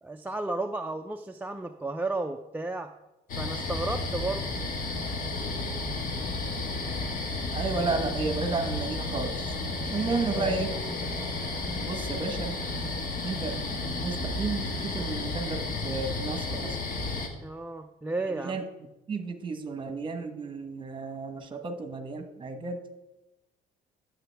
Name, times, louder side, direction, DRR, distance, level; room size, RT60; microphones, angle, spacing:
voice 1, 0.0-2.9 3.4-4.5 17.4-18.6, right 2 dB, 10° right, 3 dB, 0.4 m, -33 dB
sound 1, 3.3-17.3, left 2 dB, 55° left, 1.6 m, -32 dB
voice 2, 7.5-9.6 9.9-10.7 11.8-12.5 13.2-16.8 18.3-18.7 19.1-22.8, right 4 dB, 30° right, 7 dB, 1.2 m, -32 dB
11.5 x 7.8 x 3.4 m, 0.97 s
cardioid pair, 110°, 17 cm